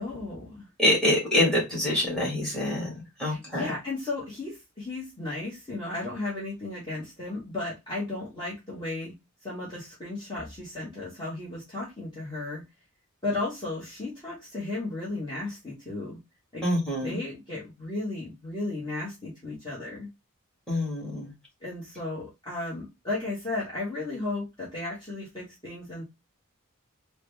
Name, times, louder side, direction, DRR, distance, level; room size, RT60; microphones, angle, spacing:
voice 1, 0.0-0.7 3.2-9.1 9.4-12.6 13.2-16.2 16.5-16.6 17.0-20.1 21.6-26.0, left 2 dB, 20° left, -7 dB, 1.1 m, -34 dB
voice 2, 0.8-2.9 3.2-3.7 16.6-17.2 20.7-21.3, left 1 dB, 5° left, -3 dB, 1.6 m, -25 dB
3.7 x 2.1 x 3.3 m, 0.22 s
head